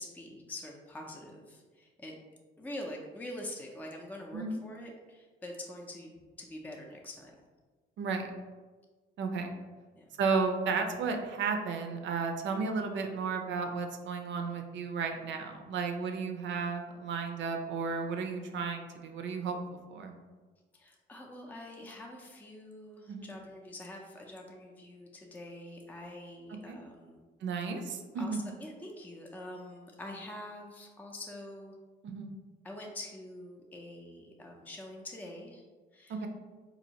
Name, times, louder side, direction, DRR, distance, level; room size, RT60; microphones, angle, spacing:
voice 1, 0.0-2.2 2.6-7.3 9.9-10.0 20.7-27.2 28.2-31.7 32.6-35.6 35.9-36.3, left 1 dB, 10° left, 0 dB, 0.5 m, -45 dB
voice 2, 8.0-8.3 9.2-9.5 10.2-19.6 19.9-20.1 23.1-23.3 26.7-26.8 27.4-28.4 32.0-32.3 36.1-36.3, right 5 dB, 70° right, 5 dB, 0.5 m, -33 dB
4.0 x 2.7 x 2.9 m, 1.3 s
cardioid pair, 90°, 20 cm